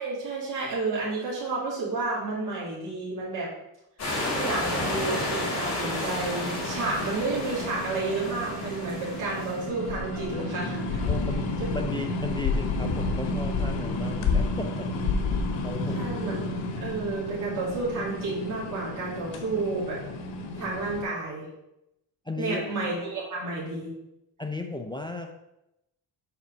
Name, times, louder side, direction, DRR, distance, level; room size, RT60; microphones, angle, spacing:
voice 1, 0.0-3.5 4.3-11.0 11.6-11.7 15.9-20.0 20.6-21.4 22.4-23.9, right 3 dB, 45° right, -6 dB, 2.3 m, -31 dB
sound 1, 4.0-9.7, left 1 dB, 35° left, 2.7 m, -31 dB
sound 2, 5.0-11.8, right 6 dB, 20° right, 2.8 m, -45 dB
sound 3, 5.8-21.0, left 3 dB, 85° left, 1.2 m, -31 dB
voice 2, 11.1-14.9 15.6-16.2 22.3-22.7 24.4-25.3, left 2 dB, 10° left, 4 dB, 0.3 m, -35 dB
5.8 x 4.3 x 6.2 m, 0.86 s
cardioid pair, 160°, 43 cm